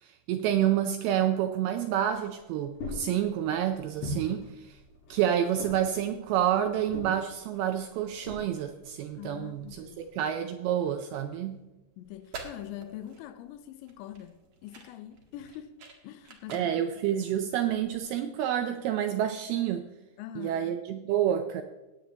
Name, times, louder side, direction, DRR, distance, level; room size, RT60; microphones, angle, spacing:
voice 1, 0.0-4.8 5.1-11.5 16.5-19.9 20.4-21.6, right 10 dB, 85° right, 7 dB, 2.2 m, -28 dB
sound 1, 1.9-10.2, left 1 dB, 70° left, 6.5 m, -43 dB
voice 2, 9.2-10.1 12.0-15.8 16.0-16.8 17.1-17.3 20.2-20.7, left 12 dB, 90° left, 9 dB, 2.9 m, -44 dB
sound 2, 12.0-18.1, right 4 dB, 50° right, 1.9 m, -48 dB
19.0 x 9.2 x 2.9 m, 1.1 s
omnidirectional pair, 5.1 m